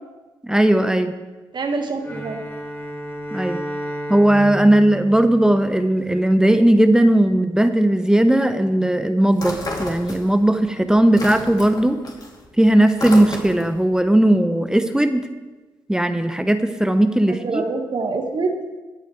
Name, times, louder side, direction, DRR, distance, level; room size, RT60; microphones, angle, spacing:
voice 1, 0.4-1.1 3.3-3.6 4.1-12.0 12.6-15.2 15.9-17.6, right 1 dB, 5° right, 9 dB, 0.9 m, -17 dB
voice 2, 1.5-2.4 17.3-18.6, right 3 dB, 45° right, 5 dB, 1.6 m, -25 dB
Bowed string instrument, 2.0-6.2, right 1 dB, 20° left, 3.1 m, -32 dB
sound 1, 9.3-10.6 10.9-13.8, left 2 dB, 40° left, 2.8 m, -31 dB
17.5 x 9.0 x 3.2 m, 1.2 s
hypercardioid pair, 40°, 10 cm